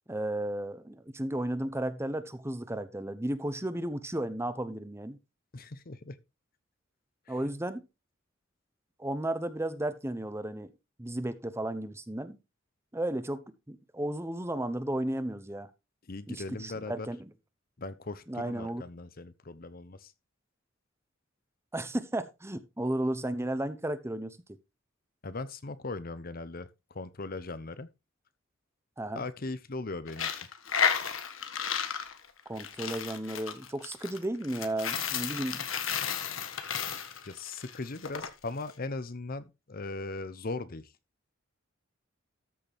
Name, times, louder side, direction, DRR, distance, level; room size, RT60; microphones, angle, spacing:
voice 1, 0.1-5.2 7.3-7.8 9.0-10.7 11.0-12.4 12.9-15.7 16.3-17.3 18.3-18.8 21.7-24.4 29.0-29.2 32.5-35.7, right 1 dB, 15° right, 0.9 m, -34 dB
voice 2, 5.5-6.2 7.3-7.4 16.1-17.1 17.8-20.1 25.2-27.9 29.1-30.4 37.2-40.9, left 3 dB, 50° left, 0.8 m, -39 dB
Coin (dropping), 30.1-38.3, left 7 dB, 85° left, 1.5 m, -33 dB
13.5 x 6.6 x 3.5 m
head